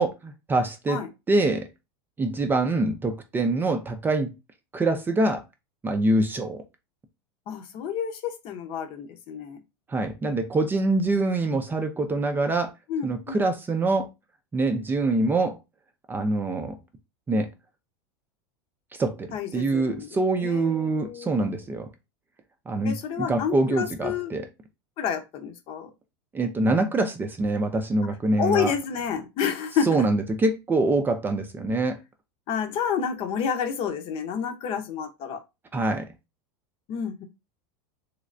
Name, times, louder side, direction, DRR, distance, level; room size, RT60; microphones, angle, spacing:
voice 1, 0.0-1.7 2.2-4.3 4.7-5.4 5.8-6.6 9.9-12.7 13.0-14.1 14.5-15.6 16.1-16.8 17.3-17.5 19.0-21.9 22.7-24.5 26.3-28.7 29.9-32.0 35.7-36.1, right 2 dB, 15° right, 0.5 m, -25 dB
voice 2, 7.5-9.6 12.9-13.5 19.3-20.1 20.4-21.3 22.8-24.3 25.0-25.9 28.4-30.1 32.5-35.4 36.9-37.2, left 7 dB, 45° left, 0.8 m, -29 dB
3.3 x 3.1 x 2.6 m
supercardioid pair, 130°, 13 cm